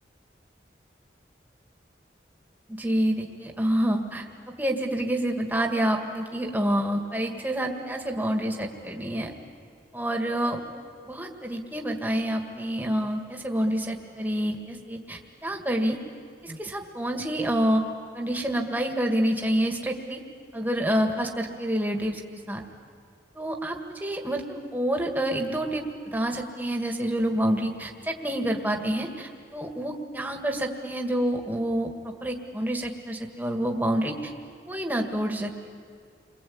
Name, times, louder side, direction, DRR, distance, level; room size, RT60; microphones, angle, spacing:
voice 1, 2.7-4.3 4.6-9.3 9.9-10.6 11.1-16.0 16.4-17.9 18.1-20.2 20.5-22.6 23.4-34.3 34.7-35.5, right 1 dB, 10° right, 3 dB, 1.9 m, -28 dB
29.5 x 22.5 x 8.7 m, 2.2 s
head